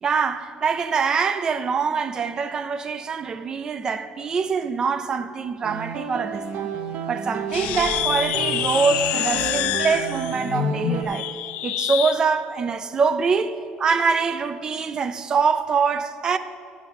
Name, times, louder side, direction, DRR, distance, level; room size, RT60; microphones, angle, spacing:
voice 1, 0.0-6.7 7.1-11.3 11.6-16.4, right 5 dB, 30° right, 0.4 m, -24 dB
sound 1, 5.6-11.0, right 6 dB, 60° right, 0.8 m, -31 dB
sound 2, 7.5-12.2, left 12 dB, 70° left, 0.4 m, -26 dB
7.2 x 7.1 x 8.0 m
cardioid pair, 155°, 3 cm